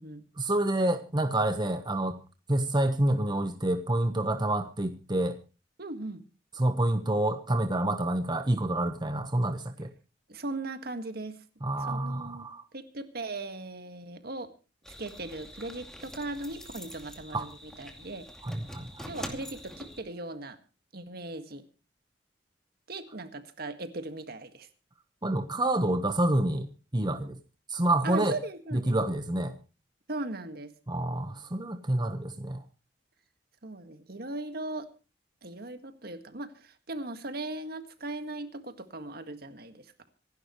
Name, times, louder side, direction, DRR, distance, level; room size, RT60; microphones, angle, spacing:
voice 1, 0.4-2.1 2.5-5.4 6.6-9.9 11.6-12.6 17.3-17.4 18.4-19.1 25.2-26.7 26.9-27.4 27.7-28.3 28.9-29.5 30.9-32.6, right 1 dB, 25° right, 7 dB, 1.1 m, -28 dB
voice 2, 5.8-6.2 10.3-11.4 11.8-12.5 12.7-14.5 15.0-18.3 19.1-20.6 20.9-21.7 22.9-24.7 28.0-29.0 30.1-30.7 33.6-34.9 35.4-39.9, right 2 dB, 60° right, 8 dB, 1.8 m, -38 dB
sound 1, 14.8-20.0, equal, 5° left, 2.5 m, -45 dB
26.5 x 11.5 x 3.1 m, 0.33 s
head